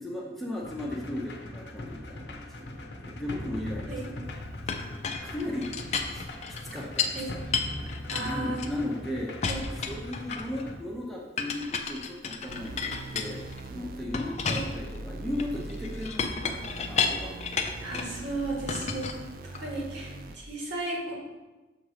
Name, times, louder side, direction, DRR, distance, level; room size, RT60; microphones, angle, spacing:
voice 1, 0.0-4.9 5.2-7.4 8.2-9.4 9.8-17.4 19.5-19.8, left 1 dB, ahead, -3 dB, 0.7 m, -37 dB
sound 1, 0.6-10.8, left 1 dB, 70° left, 0.7 m, -40 dB
Chink clink, 4.7-7.2 7.5-9.0 9.4-10.6 11.4-13.7 14.1-18.2 18.7-19.8, left 5 dB, 40° left, 0.4 m, -32 dB
voice 2, 8.1-8.6 9.5-9.6 14.5-14.7 17.8-19.1 19.6-21.1, right 2 dB, 85° right, -3 dB, 1.8 m, -34 dB
sound 2, 12.5-20.5, right 2 dB, 50° right, 0.4 m, -42 dB
6.4 x 3.0 x 4.9 m, 1.2 s
head